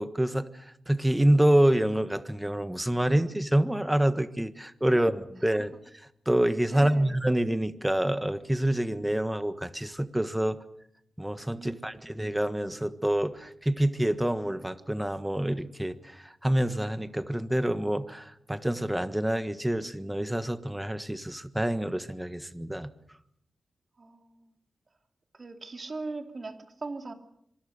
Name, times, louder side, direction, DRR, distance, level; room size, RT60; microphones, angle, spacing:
voice 1, 0.0-5.7 6.2-10.6 11.2-22.9, right 1 dB, 5° right, 11 dB, 1.5 m, -27 dB
voice 2, 6.7-7.1 11.5-12.1 24.0-24.5 25.3-27.1, right 3 dB, 40° right, 5 dB, 2.9 m, -40 dB
25.5 x 24.0 x 6.7 m, 0.74 s
wide cardioid pair, 110°, 0 cm